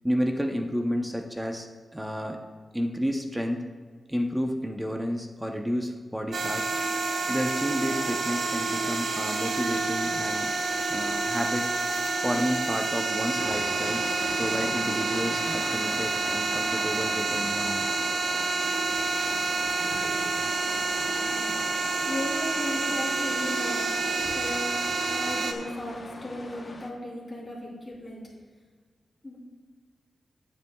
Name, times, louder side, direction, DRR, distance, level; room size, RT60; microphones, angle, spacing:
voice 1, 0.0-1.7 1.9-2.4 2.7-3.7 4.1-6.7 7.3-10.5 10.9-11.7 12.2-14.1 14.3-17.9, equal, 5° right, 3 dB, 0.6 m, -31 dB
sound 1, 6.3-25.5, right 3 dB, 65° right, 0.9 m, -28 dB
sound 2, 13.4-26.9, left 2 dB, 35° left, 0.8 m, -41 dB
voice 2, 21.3-21.6 22.1-28.2 29.2-29.4, left 1 dB, 15° left, -7 dB, 3.1 m, -36 dB
16.0 x 8.4 x 2.2 m, 1.5 s
wide cardioid pair, 165°, 0 cm